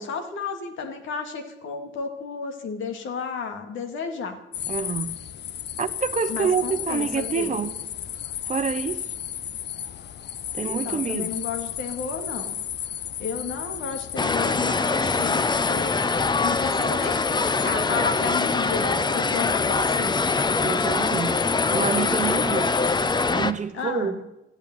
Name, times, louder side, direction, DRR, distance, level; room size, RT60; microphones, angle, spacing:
voice 1, 0.0-4.4 6.3-7.6 10.6-12.5 13.2-16.0 16.4-20.2 23.7-24.2, left 5 dB, 80° left, 2.4 m, -33 dB
sound 1, 4.5-23.3, left 9 dB, 60° left, 0.8 m, -33 dB
voice 2, 4.7-5.2 5.8-7.8 8.5-9.0 10.5-11.3 20.6-21.4 21.7-22.7 23.3-24.1, right 6 dB, 40° right, 0.9 m, -27 dB
sound 2, 14.2-23.5, left 3 dB, 20° left, 0.8 m, -23 dB
14.0 x 8.6 x 9.1 m
cardioid pair, 90°, 20 cm